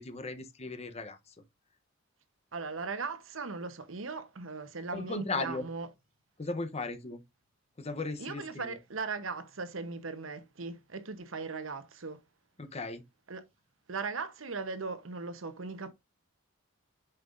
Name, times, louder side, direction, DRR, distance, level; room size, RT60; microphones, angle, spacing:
voice 1, 0.0-1.3 4.9-5.7 6.4-7.2 7.8-8.8 12.6-13.0, left 3 dB, 30° left, 0.8 m, -37 dB
voice 2, 2.5-5.9 8.2-12.2 13.3-13.4 13.9-15.9, right 4 dB, 70° right, 1.0 m, -38 dB
8.7 x 5.6 x 2.6 m
head